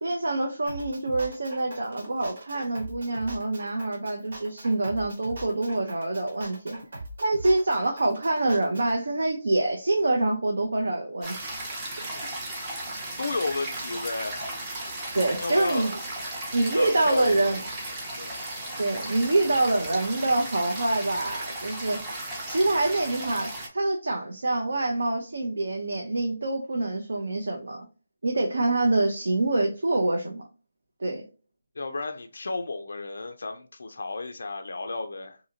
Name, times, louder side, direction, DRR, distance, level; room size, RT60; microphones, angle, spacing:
voice 1, 0.0-6.8 7.2-11.6 15.1-15.9 16.5-17.6 18.8-22.0 22.5-27.8 28.2-30.4 31.0-31.2, right 2 dB, 70° right, 0.6 m, -26 dB
sound 1, 0.7-8.9, right 1 dB, 55° right, 1.1 m, -41 dB
sound 2, 11.2-23.7, right 1 dB, 10° right, 0.4 m, -35 dB
voice 2, 13.2-14.5 15.4-16.0 16.7-17.7 18.2-18.4 31.8-35.4, left 3 dB, 60° left, 0.3 m, -33 dB
2.6 x 2.6 x 2.7 m
hypercardioid pair, 180°, 0 cm